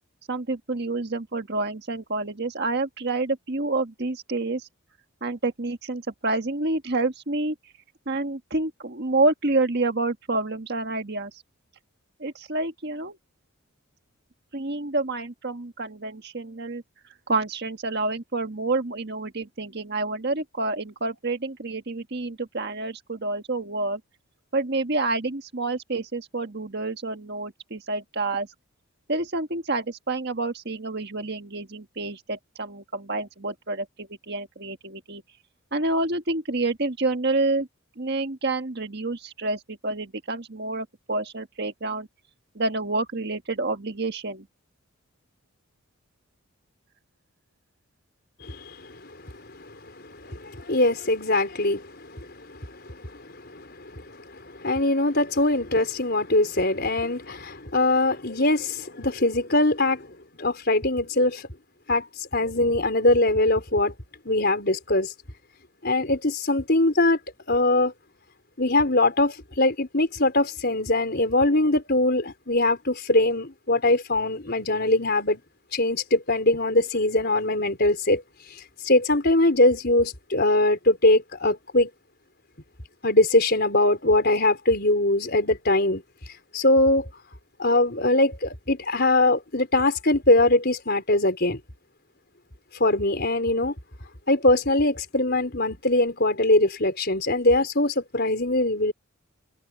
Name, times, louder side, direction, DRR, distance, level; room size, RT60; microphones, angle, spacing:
voice 1, 0.3-4.7 5.2-7.5 8.0-11.3 12.2-13.2 14.5-16.8 17.3-24.0 24.5-28.5 29.1-35.2 35.7-37.7 38.0-42.1 42.5-44.5, right 2 dB, 50° right, 1.6 m, -28 dB
voice 2, 48.4-60.1 60.4-61.4 61.9-62.1 62.3-63.9 64.2-65.1 65.8-67.2 67.5-67.9 68.6-75.4 75.7-78.2 78.5-81.9 83.0-86.0 86.5-87.1 87.6-91.6 92.8-93.7 94.3-98.9, left 2 dB, 45° left, 4.8 m, -22 dB
head